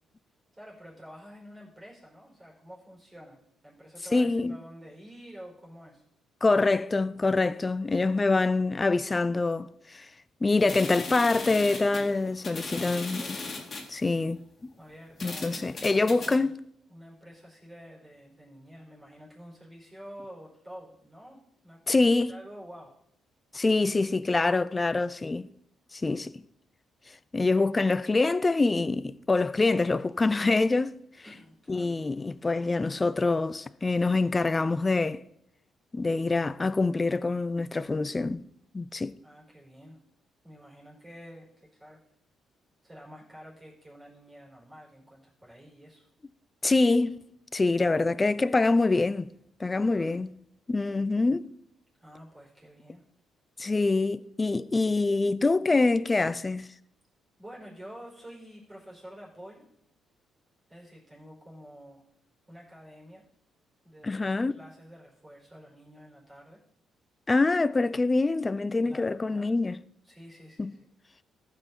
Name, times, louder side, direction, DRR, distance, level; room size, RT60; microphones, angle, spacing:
voice 1, 0.5-6.0 12.6-13.4 14.8-16.5 16.9-22.9 31.2-32.0 39.2-40.0 40.4-42.0 42.8-46.1 49.8-50.2 52.0-53.0 57.4-59.7 60.7-62.0 62.5-63.2 63.8-66.6 68.8-69.6 70.0-70.8, equal, 20° right, 4.5 m, -49 dB
voice 2, 4.1-4.6 6.4-10.1 10.4-13.2 13.9-14.7 15.2-16.6 21.9-22.4 23.5-25.5 25.9-26.4 27.3-31.0 31.7-35.2 35.9-38.4 38.7-39.1 46.6-47.2 47.5-49.3 49.6-50.3 50.7-51.5 53.6-56.7 64.0-64.5 67.3-69.8 70.6-70.7, left 3 dB, 25° left, 0.4 m, -25 dB
sound 1, 10.6-13.9 14.6-14.7 15.2-16.3, left 3 dB, 40° left, 2.1 m, -38 dB
14.5 x 5.7 x 4.1 m
cardioid pair, 90°, 0 cm